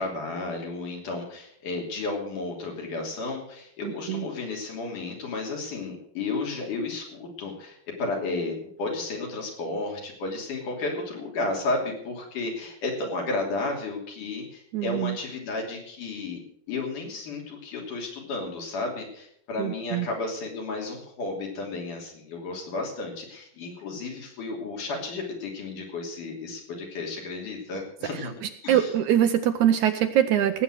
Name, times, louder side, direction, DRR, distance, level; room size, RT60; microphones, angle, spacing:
voice 1, 0.0-16.4 16.7-28.3 28.6-28.9, left 3 dB, 65° left, 0 dB, 4.5 m, -33 dB
voice 2, 3.8-4.3 14.7-15.2 19.6-20.1 28.4-30.6, right 10 dB, 70° right, 8 dB, 2.0 m, -23 dB
17.5 x 8.4 x 6.3 m, 0.69 s
omnidirectional pair, 3.9 m